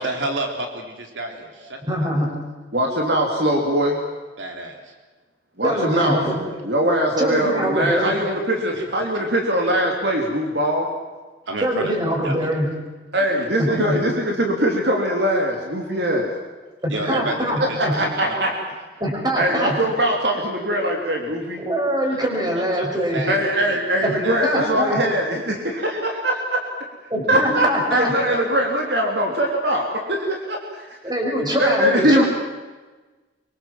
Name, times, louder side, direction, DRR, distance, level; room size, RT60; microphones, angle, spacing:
voice 1, 0.0-2.1 4.4-4.9 5.7-6.6 8.0-8.3 8.7-8.8 11.5-12.5 13.7-13.8 16.9-18.4 22.5-23.3 23.6-24.7 28.3-28.7, right 2 dB, 85° right, 3 dB, 3.5 m, -31 dB
voice 2, 1.9-2.3 5.6-6.4 7.2-8.1 11.6-12.7 13.6-14.0 16.8-18.0 18.3-18.4 19.0-19.8 21.6-23.3 24.0-25.0 27.1-28.1 31.0-32.2, equal, 20° right, 0 dB, 6.1 m, -23 dB
voice 3, 2.7-4.0 5.6-6.2 6.6-10.9 13.1-16.3 17.8-18.5 19.4-21.6 23.3-26.6 27.3-30.6 31.6-32.2, right 1 dB, 60° right, 1 dB, 3.4 m, -21 dB
24.5 x 24.0 x 7.6 m, 1.3 s
head